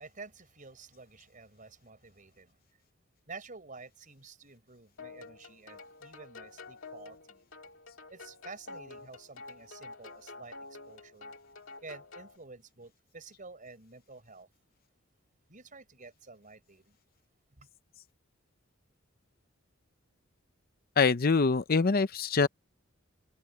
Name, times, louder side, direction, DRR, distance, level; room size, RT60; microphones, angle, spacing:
voice 1, 0.0-2.6 3.3-7.5 8.1-11.3 11.8-14.5 15.5-17.0 17.5-17.7, right 4 dB, 40° right, 5.2 m, -50 dB
sound 1, 5.0-12.4, left 3 dB, 65° left, 2.5 m, -49 dB
voice 2, 21.0-22.5, left 4 dB, 45° left, 0.6 m, -24 dB
head